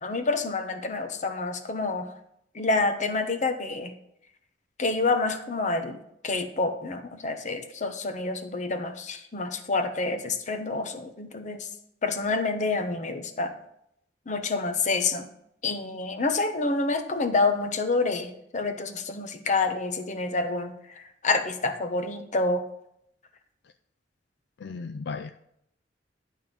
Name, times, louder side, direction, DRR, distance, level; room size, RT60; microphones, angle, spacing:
voice 1, 0.0-2.1 2.5-3.9 4.8-11.7 12.0-13.5 14.3-15.3 15.6-22.6, left 3 dB, 40° left, 7 dB, 0.9 m, -28 dB
voice 2, 24.6-25.3, left 4 dB, 65° left, 8 dB, 0.4 m, -36 dB
11.0 x 3.6 x 7.2 m, 0.76 s
head